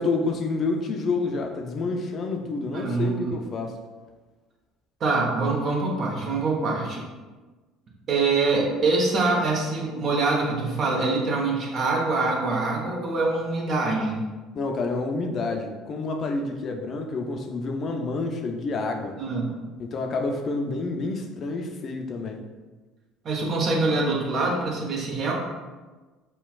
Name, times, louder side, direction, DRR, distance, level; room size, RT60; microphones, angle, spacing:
voice 1, 0.0-3.8 14.5-19.2 19.8-22.4, left 3 dB, 45° left, 3 dB, 0.5 m, -28 dB
voice 2, 2.7-3.3 5.0-7.0 8.1-14.2 19.2-19.5 23.2-25.3, right 3 dB, 45° right, -2 dB, 1.0 m, -24 dB
5.5 x 2.2 x 2.4 m, 1.3 s
hypercardioid pair, 60°, 0 cm